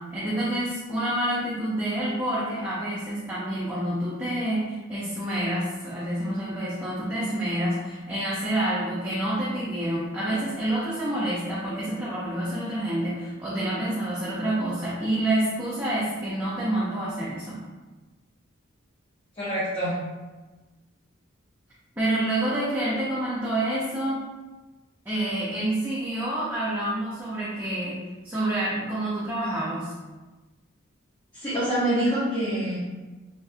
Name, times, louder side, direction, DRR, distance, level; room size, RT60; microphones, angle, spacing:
voice 1, 0.0-17.6 22.0-24.2 25.1-29.9, right 1 dB, 10° right, -9 dB, 0.5 m, -28 dB
voice 2, 19.4-20.0 31.3-32.8, right 1 dB, 25° left, -11 dB, 0.7 m, -25 dB
2.6 x 2.2 x 3.3 m, 1.2 s
head